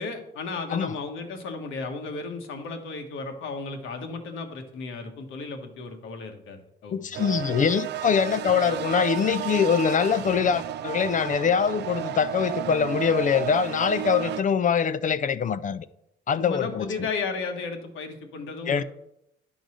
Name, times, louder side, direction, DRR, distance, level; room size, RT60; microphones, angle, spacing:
voice 1, 0.0-7.1 7.5-7.6 16.3-18.8, left 4 dB, 85° left, 1.4 m, -34 dB
voice 2, 6.9-15.9 16.3-16.9 18.7-18.8, left 7 dB, 40° left, 0.4 m, -23 dB
sound 1, 7.1-14.4, right 12 dB, 60° right, 0.4 m, -32 dB
10.0 x 3.9 x 6.3 m
cardioid pair, 90°, 20 cm